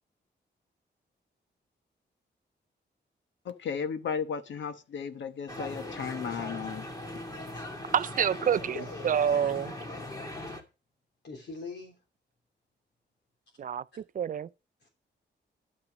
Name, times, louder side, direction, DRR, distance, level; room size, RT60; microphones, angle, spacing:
voice 1, 3.4-6.8, left 6 dB, 85° left, 1.1 m, -35 dB
sound 1, 5.5-10.6, left 1 dB, 20° left, 2.3 m, -40 dB
voice 2, 7.9-8.8 9.0-9.7 13.6-14.5, right 8 dB, 45° right, 0.4 m, -27 dB
voice 3, 8.7-9.7 11.2-11.9 14.8-14.9, left 4 dB, 65° left, 3.5 m, -43 dB
11.5 x 6.0 x 6.1 m
wide cardioid pair, 140°, 19 cm